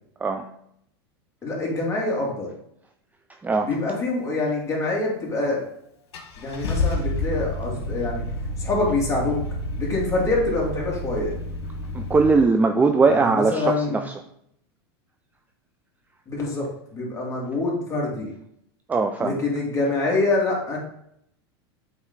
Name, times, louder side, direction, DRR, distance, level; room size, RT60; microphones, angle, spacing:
voice 1, 1.4-2.5 3.6-5.6 6.4-8.2 8.6-9.4 9.8-11.3 13.1-14.0 16.3-18.3 19.2-20.8, left 2 dB, 20° left, -3 dB, 2.4 m, -25 dB
voice 2, 3.4-3.8 11.9-14.1 18.9-19.4, right 4 dB, 10° right, 6 dB, 0.4 m, -20 dB
Car / Engine starting, 5.4-5.5 6.1-12.3, left 2 dB, 75° left, 1.4 m, -29 dB
7.9 x 3.2 x 3.9 m, 0.73 s
hypercardioid pair, 110°, 13 cm